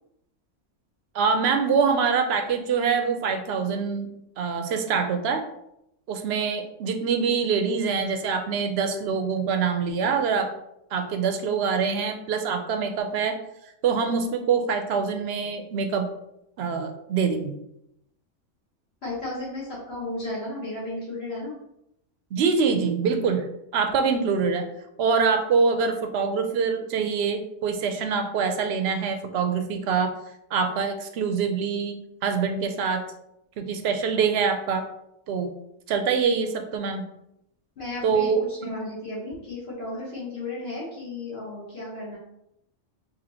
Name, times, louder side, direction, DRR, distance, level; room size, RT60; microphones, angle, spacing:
voice 1, 1.1-4.1 4.4-5.4 6.1-10.5 10.9-13.4 13.8-16.1 16.6-17.5 22.3-23.5 23.7-24.6 25.0-30.1 30.5-32.0 32.2-33.0 33.6-34.8 35.3-35.5 35.9-37.1 38.0-38.7, right 5 dB, 65° right, 6 dB, 0.7 m, -24 dB
voice 2, 19.0-21.5 37.8-42.2, left 2 dB, 55° left, -8 dB, 1.3 m, -34 dB
4.3 x 2.7 x 2.7 m, 0.81 s
omnidirectional pair, 1.3 m